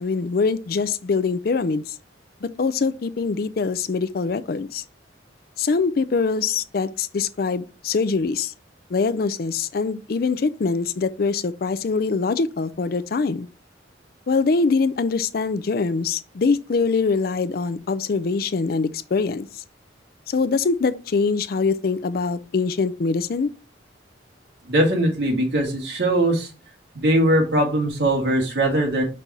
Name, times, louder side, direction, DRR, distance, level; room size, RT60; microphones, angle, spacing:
voice 1, 0.0-1.8 2.4-4.8 5.6-8.5 8.9-13.5 14.3-19.5 20.3-23.5, left 4 dB, 50° left, 0.4 m, -23 dB
voice 2, 24.7-26.5 27.0-29.0, right 1 dB, 65° right, 1.9 m, -20 dB
5.3 x 4.2 x 4.6 m
head